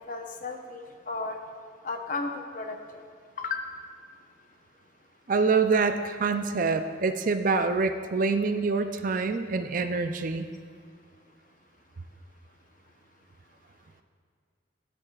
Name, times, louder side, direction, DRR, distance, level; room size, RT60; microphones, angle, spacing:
voice 1, 0.1-1.4 1.8-2.8 3.4-3.6, left 3 dB, 45° left, 4 dB, 0.8 m, -34 dB
voice 2, 5.3-10.5, right 4 dB, 45° right, 8 dB, 0.4 m, -26 dB
15.5 x 9.7 x 2.4 m, 2.1 s
head